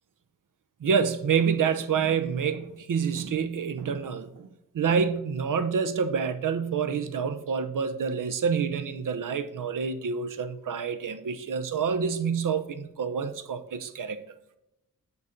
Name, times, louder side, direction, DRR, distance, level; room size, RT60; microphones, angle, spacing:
voice 1, 0.8-4.5 4.7-14.2, right 6 dB, 70° right, 0.8 m, -27 dB
9.3 x 4.1 x 5.0 m
wide cardioid pair, 160°, 33 cm